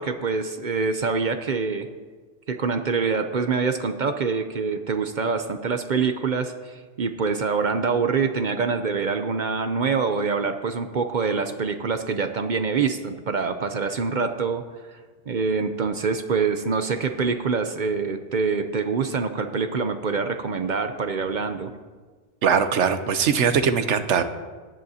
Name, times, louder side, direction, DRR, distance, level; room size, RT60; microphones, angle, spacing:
voice 1, 0.0-1.9 2.5-14.6 15.3-21.7, right 5 dB, 50° right, 7 dB, 0.6 m, -25 dB
voice 2, 22.4-24.2, right 7 dB, 75° right, 10 dB, 1.1 m, -21 dB
17.5 x 10.5 x 2.8 m, 1.4 s
omnidirectional pair, 1.2 m